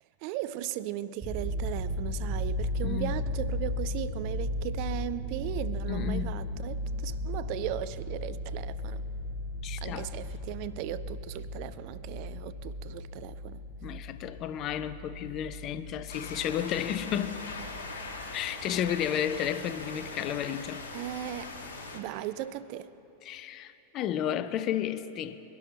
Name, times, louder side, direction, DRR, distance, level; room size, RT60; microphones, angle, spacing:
voice 1, 0.2-9.0 9.8-13.6 20.9-21.5 21.9-22.9, right 13 dB, 45° right, 15 dB, 0.5 m, -37 dB
sound 1, 1.2-18.3 18.6-18.9, left 1 dB, 20° right, 4.0 m, -36 dB
voice 2, 2.8-3.2 5.9-6.5 9.6-10.1 13.8-17.5 18.3-20.8 23.2-25.4, left 10 dB, 35° left, 13 dB, 0.6 m, -32 dB
sound 2, 16.1-22.0, left 3 dB, 65° left, 1.8 m, -41 dB
22.5 x 12.0 x 4.1 m, 3.0 s
figure-of-eight pair, 90°, 0 cm